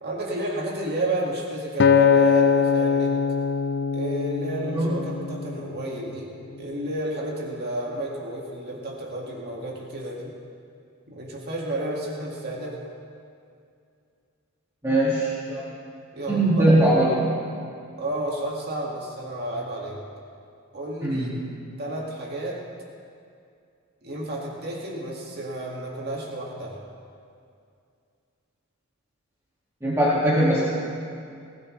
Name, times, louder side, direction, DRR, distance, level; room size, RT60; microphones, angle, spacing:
voice 1, 0.0-3.2 3.9-6.3 6.6-10.3 11.1-12.8 16.1-17.0 18.0-20.0 20.7-21.4 21.8-22.6 24.0-26.8, right 1 dB, 50° right, -3 dB, 2.1 m, -31 dB
Acoustic guitar, 1.8-6.1 6.7-7.0, left 6 dB, 55° left, 0.5 m, -22 dB
voice 2, 4.6-5.0 14.8-15.6 16.3-17.1 21.0-21.4 29.8-30.6, right 1 dB, 15° right, -9 dB, 2.2 m, -21 dB
20.0 x 15.5 x 3.3 m, 2.4 s
head